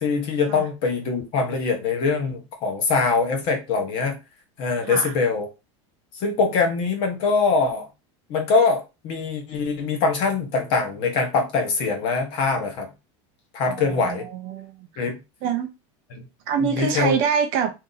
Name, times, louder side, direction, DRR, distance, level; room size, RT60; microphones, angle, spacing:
voice 1, 0.0-4.2 4.6-5.5 6.1-7.9 8.3-12.9 13.5-14.3 15.0-15.2 16.1-16.2 16.6-17.2, left 4 dB, 35° left, 0.9 m, -23 dB
voice 2, 13.7-15.0 15.4-15.7 16.5-17.7, right 7 dB, 35° right, 0.4 m, -25 dB
2.7 x 2.5 x 3.8 m
supercardioid pair, 180°, 15 cm